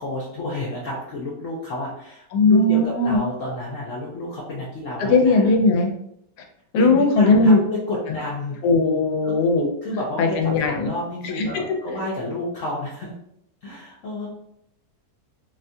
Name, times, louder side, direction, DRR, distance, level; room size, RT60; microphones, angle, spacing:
voice 1, 0.0-5.5 6.7-8.6 9.2-9.4 9.8-13.1 13.6-14.3, left 1 dB, 65° left, -5 dB, 0.9 m, -30 dB
voice 2, 2.3-3.2 5.0-5.9 6.7-7.6 8.6-9.7 10.2-10.9 11.3-11.8, left 2 dB, 85° left, 3 dB, 1.1 m, -18 dB
2.8 x 2.2 x 2.6 m, 0.74 s
omnidirectional pair, 1.7 m